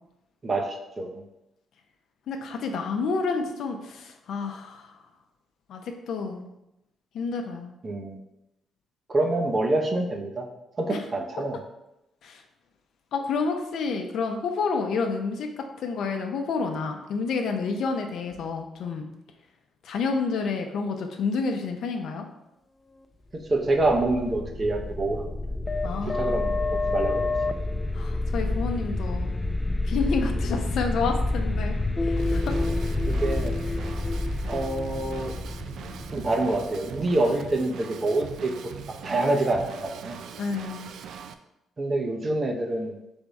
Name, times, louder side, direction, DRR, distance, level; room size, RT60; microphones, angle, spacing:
voice 1, 0.4-1.2 7.8-8.2 9.1-10.5 10.8-11.6 23.3-25.3 26.1-27.3 33.1-33.6 34.5-35.3 36.1-38.5 39.0-40.2 41.8-42.9, right 2 dB, 35° right, 2 dB, 0.7 m, -26 dB
voice 2, 2.3-4.9 5.7-5.8 6.1-6.5 7.1-7.7 10.9-11.0 12.2-12.4 13.1-19.1 19.8-22.2 25.8-26.4 27.9-29.3 29.9-31.8 32.0-32.6 40.4-40.9, left 4 dB, 70° left, 4 dB, 0.6 m, -29 dB
sound 1, 23.6-37.3, left 2 dB, 15° left, 0.3 m, -28 dB
Drum kit / Drum, 32.2-41.3, right 7 dB, 75° right, 0.3 m, -41 dB
3.5 x 3.5 x 4.0 m, 0.88 s
cardioid pair, 90°, 0 cm